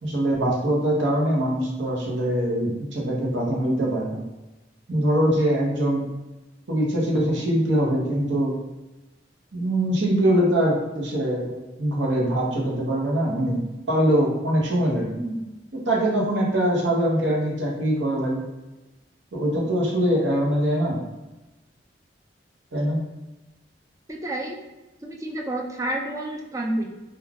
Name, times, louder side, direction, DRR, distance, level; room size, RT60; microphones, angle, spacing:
voice 1, 0.0-4.2 4.9-6.1 6.7-8.5 9.5-13.6 13.9-15.2 15.7-18.4 19.3-21.0 22.7-23.1, right 1 dB, 90° right, -2 dB, 0.8 m, -23 dB
voice 2, 24.1-24.6 25.0-26.9, right 1 dB, 20° right, 1 dB, 0.4 m, -29 dB
2.3 x 2.3 x 3.3 m, 1.1 s
head